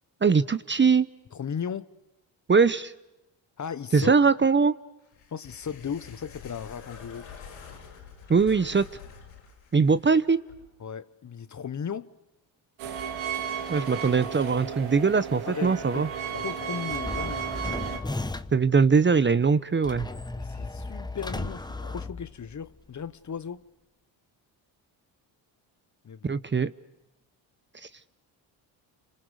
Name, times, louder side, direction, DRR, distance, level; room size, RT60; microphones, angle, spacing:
voice 1, 0.2-1.1 2.5-2.9 3.9-4.7 8.3-8.8 9.7-10.4 13.7-16.1 18.5-20.1 26.2-26.7, right 5 dB, 25° right, 0.9 m, -21 dB
voice 2, 1.3-1.9 3.6-4.1 5.3-7.3 10.8-12.1 15.4-17.5 20.4-23.6 26.0-26.3, left 7 dB, 40° left, 1.2 m, -36 dB
sound 1, 5.0-10.7, left 6 dB, 90° left, 5.7 m, -47 dB
sound 2, 12.8-18.0, right 7 dB, 85° right, 2.7 m, -34 dB
sound 3, 16.9-18.7 19.8-22.7, left 2 dB, 10° left, 1.1 m, -35 dB
29.5 x 26.5 x 6.5 m
cardioid pair, 80°, 46 cm